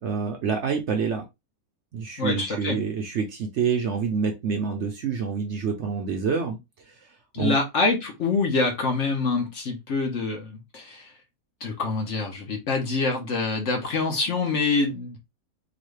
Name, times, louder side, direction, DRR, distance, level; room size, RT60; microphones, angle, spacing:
voice 1, 0.0-1.2 1.9-6.6 6.9-7.0 7.4-7.6, right 6 dB, 60° right, 0.8 m, -27 dB
voice 2, 2.2-2.8 7.3-11.1 11.6-15.2, left 3 dB, 55° left, 1.2 m, -26 dB
3.9 x 2.3 x 3.2 m
omnidirectional pair, 1.6 m